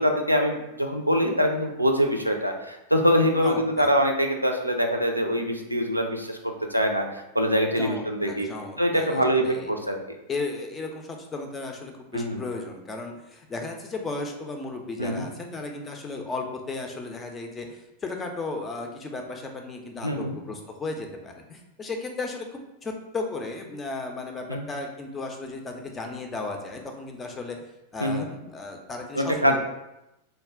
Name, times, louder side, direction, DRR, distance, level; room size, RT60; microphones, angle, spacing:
voice 1, 0.0-6.4 6.7-8.5 8.8-10.2 12.1-12.4 15.0-15.3 20.0-20.4 24.5-24.6 28.0-28.3 29.1-29.6, equal, 85° right, 3 dB, 0.3 m, -24 dB
voice 2, 3.4-3.9 7.8-9.7 10.3-27.6 27.9-29.6, left 3 dB, 20° left, 3 dB, 0.4 m, -35 dB
2.2 x 2.0 x 3.5 m, 0.90 s
figure-of-eight pair, 90°, 0 cm